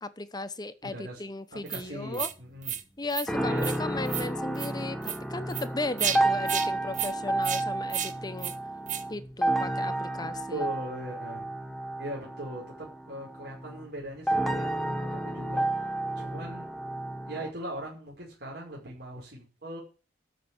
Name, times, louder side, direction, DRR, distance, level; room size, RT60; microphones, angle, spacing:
voice 1, 0.0-2.3 3.0-8.5 9.1-10.6, left 2 dB, 20° left, 0.9 m, -36 dB
voice 2, 0.8-1.2 1.7-2.7 3.4-3.8 10.5-11.5 12.0-16.7 17.3-19.8, right 1 dB, 60° right, 5.5 m, -40 dB
sound 1, 1.7-1.8 2.1-2.3 2.6-2.8 3.1-3.3 3.6-3.8 4.1-4.3 4.5-4.7 5.0-5.2 5.5-5.6 6.0-6.2 6.5-6.7 6.9-7.1 7.4-7.6 7.9-8.1 8.4-8.5 8.9-9.0, right 10 dB, 45° right, 1.1 m, -31 dB
sound 2, 3.3-17.5, right 1 dB, ahead, 1.4 m, -31 dB
13.5 x 5.6 x 8.3 m
head